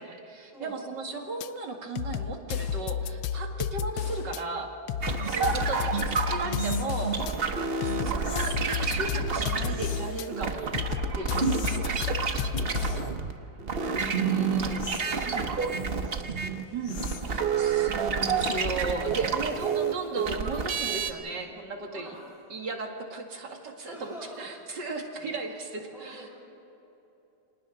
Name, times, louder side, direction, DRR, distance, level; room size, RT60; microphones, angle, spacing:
voice 1, 0.0-4.7 5.3-7.2 7.8-10.7 11.1-12.2 13.8-14.9 15.2-15.4 16.7-17.0 17.2-22.1 22.5-26.3, right 3 dB, 65° right, 2 dB, 2.7 m, -36 dB
sound 1, 1.4-1.5 2.0-4.4 4.9-7.3 7.8-10.3 10.7-13.1, left 8 dB, 85° left, 1.4 m, -32 dB
sound 2, 5.0-13.3 13.6-21.1, right 5 dB, 40° right, 0.9 m, -29 dB
sound 3, 5.2-5.5 6.5-7.0 8.2-8.6 9.8-10.2 11.4-11.8 12.8-13.1 14.8-15.1 16.8-17.4, left 7 dB, 60° left, 1.6 m, -43 dB
voice 2, 12.4-12.8 14.4-16.9 19.2-19.7 21.9-22.2 23.8-24.8 25.2-26.3, right 1 dB, ahead, -7 dB, 5.6 m, -48 dB
29.5 x 26.0 x 3.9 m, 3.0 s
omnidirectional pair, 2.0 m